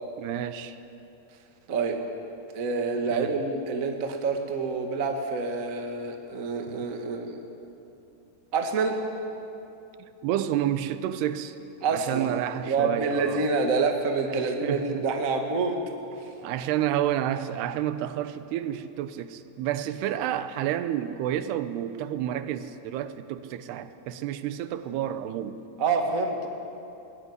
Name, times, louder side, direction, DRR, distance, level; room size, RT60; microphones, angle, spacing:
voice 1, 0.2-0.8 3.1-3.4 10.0-11.6 11.9-13.5 14.3-15.1 16.4-25.6, right 11 dB, 85° right, 12 dB, 2.9 m, -30 dB
voice 2, 2.5-7.4 8.5-9.0 11.8-12.4 12.7-15.8 16.2-16.3 25.8-26.5, right 4 dB, 45° right, 4 dB, 1.0 m, -27 dB
20.5 x 17.5 x 9.6 m, 2.8 s
omnidirectional pair, 4.6 m